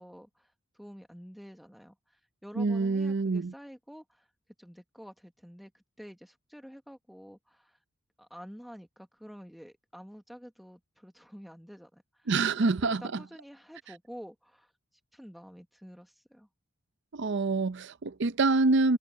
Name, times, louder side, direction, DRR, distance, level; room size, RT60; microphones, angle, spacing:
voice 1, 0.0-4.3 4.6-7.8 8.2-14.7 15.1-16.5, equal, ahead, 1.2 m, -49 dB
voice 2, 2.6-3.5 12.3-13.0 17.1-19.0, right 3 dB, 55° right, 0.6 m, -26 dB
head